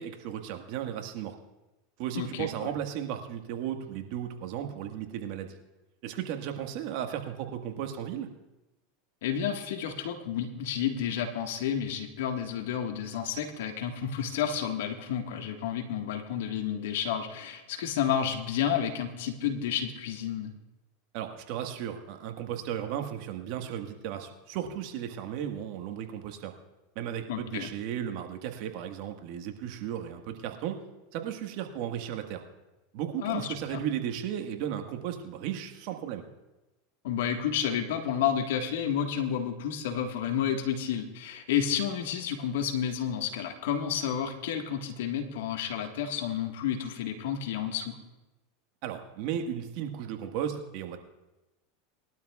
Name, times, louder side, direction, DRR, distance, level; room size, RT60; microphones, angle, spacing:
voice 1, 0.0-1.3 2.0-5.5 6.0-8.3 21.1-26.5 26.9-30.8 31.1-32.4 32.9-36.2 48.8-51.0, right 9 dB, 60° right, 5 dB, 1.6 m, -35 dB
voice 2, 2.1-2.7 9.2-20.5 27.3-27.7 33.2-33.8 37.0-48.0, left 8 dB, 75° left, 4 dB, 1.6 m, -31 dB
21.0 x 12.0 x 2.4 m, 1.0 s
hypercardioid pair, 105°, 0 cm